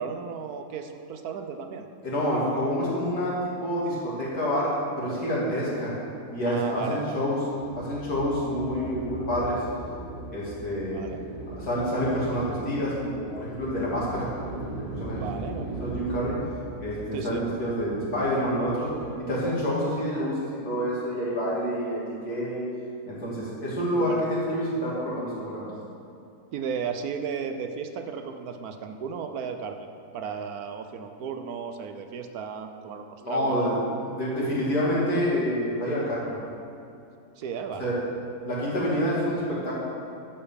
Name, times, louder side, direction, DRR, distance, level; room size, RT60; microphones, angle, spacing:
voice 1, 0.0-1.9 6.5-7.2 10.8-11.2 15.1-16.0 17.1-17.4 24.0-24.2 26.5-33.6 37.4-38.0, right 6 dB, 75° right, 6 dB, 1.1 m, -35 dB
voice 2, 2.0-3.3 3.6-5.9 6.3-7.4 7.8-9.6 10.3-11.0 11.5-16.4 16.8-18.9 19.2-20.3 20.6-22.6 23.1-25.7 33.2-33.8 34.0-36.4 37.8-38.0 38.4-39.7, equal, 75° left, -7 dB, 3.1 m, -28 dB
sound 1, 7.6-19.3, right 2 dB, 40° right, 2.7 m, -39 dB
11.0 x 6.9 x 5.2 m, 2.6 s
omnidirectional pair, 1.7 m